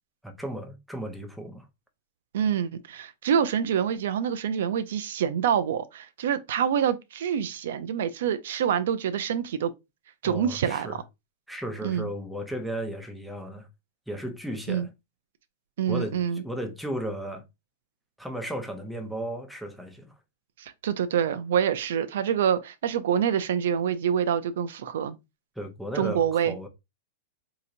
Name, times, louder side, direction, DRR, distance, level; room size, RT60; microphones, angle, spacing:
voice 1, 0.2-1.7 10.2-11.0 11.5-13.7 14.1-14.9 15.9-17.4 18.2-20.1 25.6-26.7, right 1 dB, ahead, 0.8 m, -35 dB
voice 2, 2.3-9.7 10.2-11.0 11.8-12.1 14.7-14.9 15.8-16.4 20.6-25.1 25.9-26.5, right 8 dB, 75° right, 0.4 m, -26 dB
3.8 x 2.8 x 2.6 m
hypercardioid pair, 120°, 0 cm